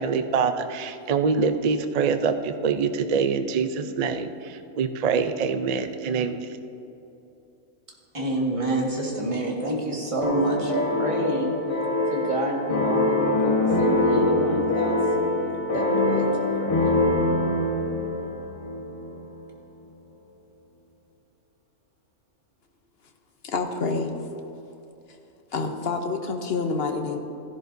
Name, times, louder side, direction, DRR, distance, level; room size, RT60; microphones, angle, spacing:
voice 1, 0.0-6.5, right 5 dB, 80° right, 8 dB, 0.3 m, -25 dB
voice 2, 8.1-11.5 12.1-15.0 15.7-16.9, right 1 dB, 25° right, -2 dB, 1.7 m, -28 dB
sound 1, 10.2-19.2, left 2 dB, 25° left, 1.3 m, -24 dB
voice 3, 23.4-24.1 25.5-27.2, left 4 dB, 50° left, 5 dB, 0.9 m, -27 dB
15.5 x 11.0 x 2.7 m, 2.9 s
omnidirectional pair, 1.5 m